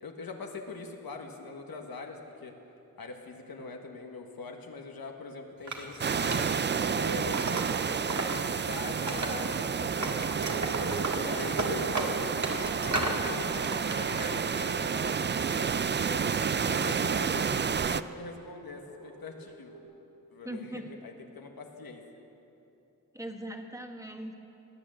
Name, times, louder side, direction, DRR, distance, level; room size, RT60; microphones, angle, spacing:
voice 1, 0.0-2.5 3.0-6.5 6.9-7.7 8.0-10.5 11.2-12.0 12.5-16.4 16.6-19.7 20.3-20.7 21.0-22.0, left 3 dB, 85° left, 3 dB, 1.4 m, -42 dB
Wood, 5.7-8.3 8.7-9.7 10.0-13.2 13.6-14.3, right 2 dB, 55° right, 1.8 m, -34 dB
sound 1, 6.0-18.0, right 6 dB, 30° right, 0.4 m, -30 dB
sound 2, 10.0-17.0 18.7-19.8, right 2 dB, 90° right, 3.8 m, -44 dB
voice 2, 20.4-20.9 23.1-24.3, right 1 dB, 10° right, 3 dB, 1.4 m, -39 dB
18.5 x 8.8 x 7.7 m, 2.9 s
wide cardioid pair, 70°, 35 cm